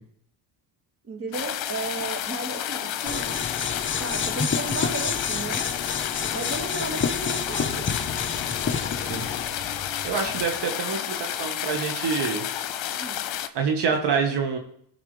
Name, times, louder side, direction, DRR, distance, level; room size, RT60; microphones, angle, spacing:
voice 1, 1.0-3.4 4.0-5.7 6.3-7.9 12.4-12.5 13.0-13.2, right 3 dB, 30° right, 5 dB, 1.8 m, -34 dB
sound 1, 1.3-13.5, left 11 dB, 70° left, 0.9 m, -31 dB
sound 2, 3.1-9.5, left 5 dB, 25° left, 0.8 m, -29 dB
sound 3, 7.5-10.6, left 5 dB, 45° left, 2.4 m, -38 dB
voice 2, 10.0-12.4 13.5-14.6, right 5 dB, 55° right, 3 dB, 1.4 m, -26 dB
17.0 x 5.9 x 3.3 m, 0.67 s
supercardioid pair, 80°, 48 cm